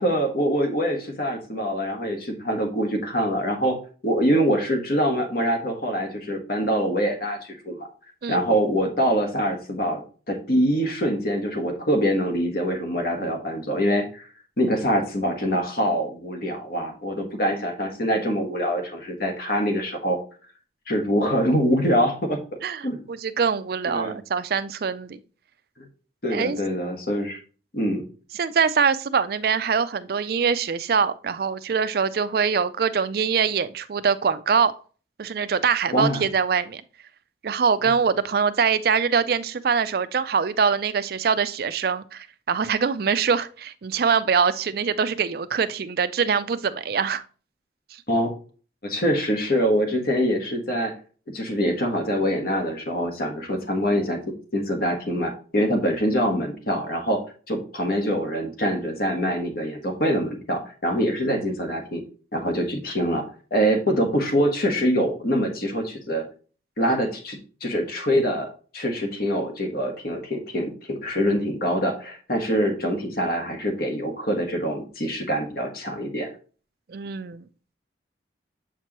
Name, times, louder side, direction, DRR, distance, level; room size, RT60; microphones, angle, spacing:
voice 1, 0.0-3.8 4.0-7.9 8.3-14.3 14.6-20.2 20.9-22.4 22.8-23.1 23.9-24.1 25.8-25.9 26.2-27.4 27.7-28.0 35.9-36.2 48.1-48.3 48.8-50.9 51.3-54.2 54.5-62.0 62.3-63.2 63.5-66.2 66.8-76.3, equal, 55° left, 1.3 m, -24 dB
voice 2, 22.6-25.2 26.3-26.6 28.4-34.7 35.2-36.8 37.4-47.2 76.9-77.4, right 6 dB, 55° right, 0.4 m, -23 dB
7.4 x 4.6 x 2.9 m
head